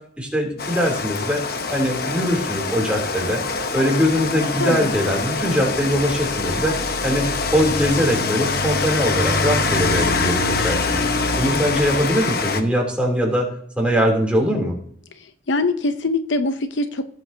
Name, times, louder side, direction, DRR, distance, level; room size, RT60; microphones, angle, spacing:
voice 1, 0.2-1.4 1.7-3.4 3.7-6.7 7.0-11.0 11.4-13.5 13.8-14.7, equal, 5° right, -1 dB, 3.1 m, -21 dB
Rain, 0.6-12.6, left 3 dB, 55° left, 0.9 m, -24 dB
voice 2, 4.6-4.9 15.2-17.1, left 2 dB, 80° left, 9 dB, 0.8 m, -23 dB
16.5 x 7.8 x 2.8 m, 0.64 s
head